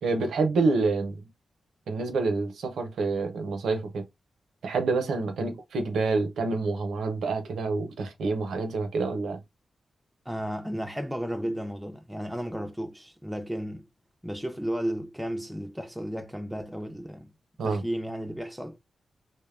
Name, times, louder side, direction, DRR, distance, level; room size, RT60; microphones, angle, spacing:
voice 1, 0.0-1.3 1.9-4.0 4.6-9.4 17.6-17.8, right 3 dB, 85° right, 0.6 m, -27 dB
voice 2, 10.3-13.9 14.2-17.3 17.6-18.8, equal, 5° right, 0.4 m, -33 dB
2.7 x 2.1 x 2.3 m
cardioid pair, 60°, 0 cm